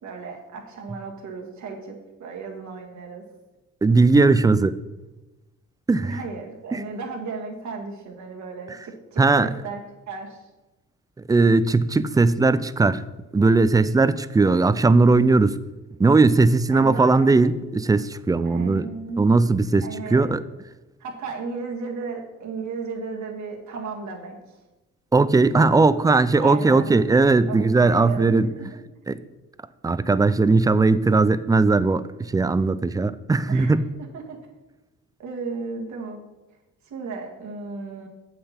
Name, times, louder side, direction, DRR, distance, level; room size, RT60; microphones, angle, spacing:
voice 1, 0.0-3.2 6.0-9.8 10.1-10.5 16.7-17.3 18.4-19.3 19.8-20.3 21.0-24.6 26.4-26.9 27.5-28.7 33.5-33.7 34.1-34.4 35.2-36.2 36.8-38.1, right 4 dB, 70° right, 1 dB, 1.8 m, -34 dB
voice 2, 3.8-4.8 5.9-6.2 6.7-6.8 9.2-9.5 11.3-13.0 13.3-15.6 16.0-18.9 19.2-20.4 25.1-28.5 29.1-29.2 29.8-33.8, right 3 dB, 15° right, 15 dB, 0.3 m, -18 dB
7.7 x 6.6 x 4.4 m, 1.1 s
cardioid pair, 90°, 30 cm